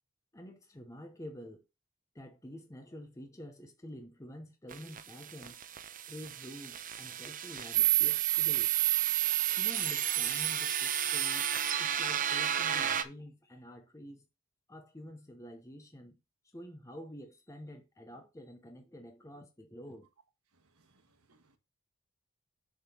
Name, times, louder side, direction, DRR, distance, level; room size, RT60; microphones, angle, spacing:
voice 1, 0.3-1.6 2.1-5.6 6.1-8.7 9.6-11.5 11.8-14.3 14.7-16.2 16.5-20.1, equal, 15° left, 0.9 m, -48 dB
sound 1, 4.7-13.0, right 11 dB, 40° right, 0.7 m, -30 dB
voice 2, 20.6-21.6, right 2 dB, 80° right, 1.4 m, -69 dB
6.9 x 3.8 x 6.4 m
head